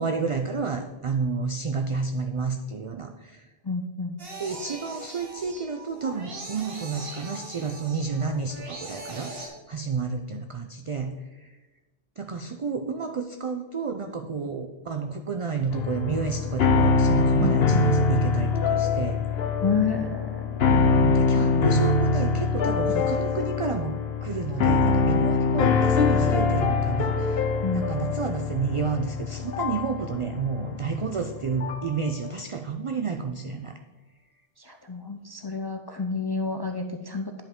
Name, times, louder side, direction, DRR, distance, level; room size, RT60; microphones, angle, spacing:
voice 1, 0.0-3.5 4.4-11.6 12.2-19.6 20.7-27.5 27.7-33.8, right 5 dB, 50° right, 6 dB, 0.4 m, -30 dB
voice 2, 3.6-4.2 19.6-20.7 21.4-21.6 22.9-23.0 27.6-27.9 34.6-37.4, left 4 dB, 40° left, 4 dB, 0.3 m, -30 dB
sound 1, 4.2-9.5, right 2 dB, 65° right, 1.7 m, -40 dB
sound 2, 15.7-32.0, left 4 dB, 75° left, 1.0 m, -24 dB
10.0 x 5.6 x 3.6 m, 1.1 s
omnidirectional pair, 1.0 m